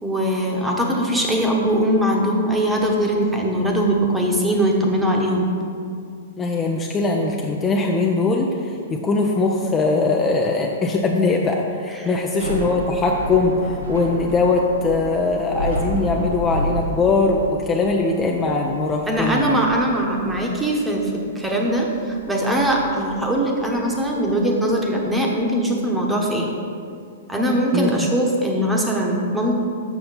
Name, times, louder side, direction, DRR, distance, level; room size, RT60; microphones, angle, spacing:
voice 1, 0.0-5.5 12.0-12.1 19.1-26.5 27.3-29.6, right 1 dB, 5° right, -1 dB, 1.1 m, -21 dB
voice 2, 6.4-19.6 27.7-28.1, left 3 dB, 20° left, 0 dB, 0.5 m, -21 dB
Thunder / Rain, 12.2-25.4, right 1 dB, 90° right, 1.4 m, -32 dB
7.1 x 5.6 x 4.1 m, 2.4 s
hypercardioid pair, 115°, 0 cm